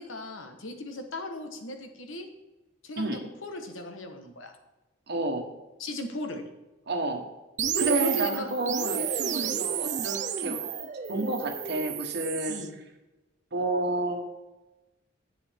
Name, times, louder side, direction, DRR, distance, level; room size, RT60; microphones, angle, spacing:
voice 1, 0.0-2.3 2.8-4.5 5.8-6.4 7.7-8.5 12.5-12.8, equal, 80° left, 5 dB, 1.2 m, -36 dB
voice 2, 5.1-5.4 6.9-7.2 7.8-10.6 11.1-12.6 13.5-14.3, right 2 dB, 55° right, 4 dB, 1.2 m, -30 dB
sound 1, 7.6-12.7, right 8 dB, 40° right, 0.4 m, -31 dB
10.5 x 7.7 x 3.6 m, 1.1 s
head